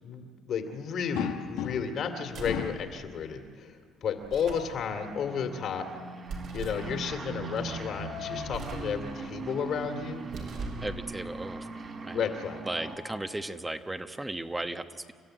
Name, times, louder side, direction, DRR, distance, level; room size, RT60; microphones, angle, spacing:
voice 1, 0.0-5.9 6.5-10.2 12.1-12.6, left 6 dB, 65° left, 6 dB, 2.6 m, -32 dB
sound 1, 1.1-2.1 2.4-2.9 4.2-4.9 7.6-8.6 10.0-10.2 10.6-10.7 12.2-13.5, left 10 dB, 85° left, 1.3 m, -39 dB
sound 2, 2.3-2.7 4.2-4.7 6.3-6.9 8.4-8.9 10.2-10.9, right 4 dB, 70° right, 5.6 m, -40 dB
sound 3, 4.7-13.0, right 4 dB, 45° right, 3.4 m, -40 dB
voice 2, 10.8-11.7 12.0-12.2 12.6-15.1, right 2 dB, 15° right, 7 dB, 1.2 m, -35 dB
29.0 x 13.0 x 9.1 m, 2.2 s
supercardioid pair, 70°, 0 cm